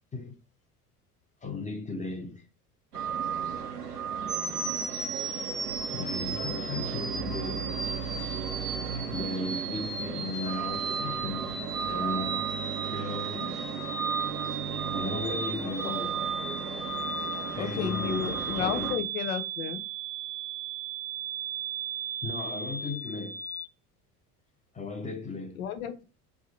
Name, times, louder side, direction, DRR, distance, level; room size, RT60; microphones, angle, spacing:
voice 1, 1.4-2.4 5.9-7.7 8.0-8.4 9.1-12.5 12.9-13.8 14.9-16.2 17.5-19.0 22.2-23.4 24.7-25.6, left 3 dB, 15° left, 0.9 m, -36 dB
sound 1, 2.9-19.0, right 7 dB, 80° right, 0.8 m, -35 dB
sound 2, 4.3-23.6, right 4 dB, 10° right, 0.4 m, -36 dB
voice 2, 17.6-19.8 25.6-26.0, left 9 dB, 65° left, 0.8 m, -32 dB
3.5 x 2.8 x 4.2 m
figure-of-eight pair, 65°, 46 cm